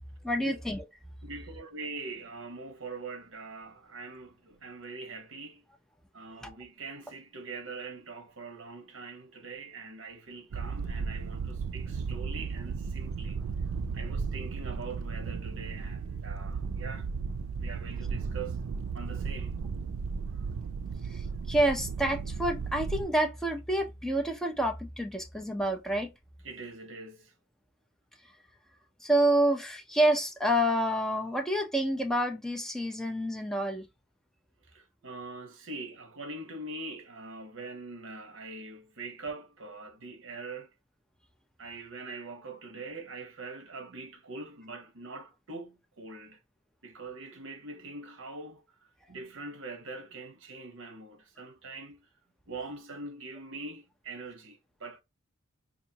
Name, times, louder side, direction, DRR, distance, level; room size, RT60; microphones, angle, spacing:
voice 1, 0.2-0.8 6.4-6.5 21.1-26.1 29.0-33.9, right 1 dB, ahead, 0.5 m, -28 dB
voice 2, 1.2-5.6 6.1-13.4 13.9-17.1 17.6-18.6 18.9-19.6 26.4-27.3 34.7-40.7 41.6-46.4 46.8-48.6 49.1-52.1 52.5-55.0, right 3 dB, 65° right, 0.8 m, -43 dB
sound 1, 10.5-23.1, right 5 dB, 80° right, 0.4 m, -35 dB
4.0 x 2.6 x 2.8 m
head